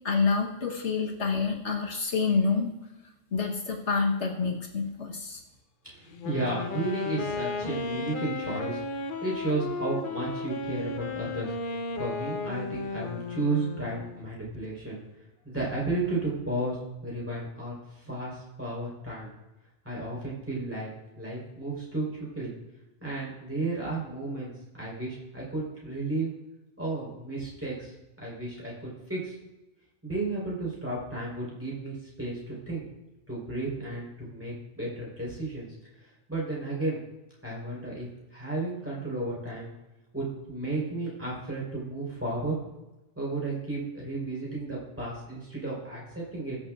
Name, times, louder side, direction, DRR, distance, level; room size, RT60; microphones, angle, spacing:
voice 1, 0.0-2.7 3.3-5.4, left 4 dB, 70° left, 0 dB, 1.5 m, -27 dB
voice 2, 5.8-8.9 9.2-11.5 12.0-15.0 15.4-16.8 17.0-19.3 19.8-22.5 23.0-26.3 26.8-27.9 28.2-29.4 30.0-32.8 33.3-35.7 36.3-37.0 37.4-39.7 40.1-42.5 43.2-46.6, right 2 dB, 10° right, -6 dB, 4.0 m, -33 dB
Wind instrument woodwind instrument, 6.1-14.2, left 3 dB, 50° left, 0.8 m, -34 dB
21.0 x 7.4 x 2.4 m, 1.0 s
omnidirectional pair, 1.2 m